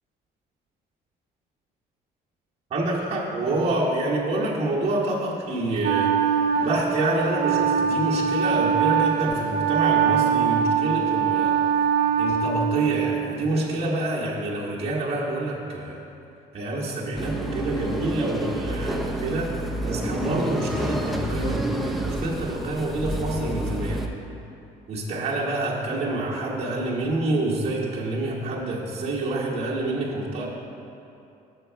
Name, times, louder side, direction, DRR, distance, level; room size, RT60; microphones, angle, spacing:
voice 1, 2.7-6.2 6.6-11.6 12.2-16.0 16.5-19.6 19.8-24.0 24.9-30.5, right 2 dB, 35° right, -6 dB, 1.3 m, -27 dB
Wind instrument woodwind instrument, 5.8-13.3, right 7 dB, 65° right, 0.4 m, -23 dB
sound 1, 17.2-24.1, right 1 dB, ahead, 0.5 m, -29 dB
6.6 x 6.2 x 4.5 m, 2.7 s
cardioid pair, 110°, 17 cm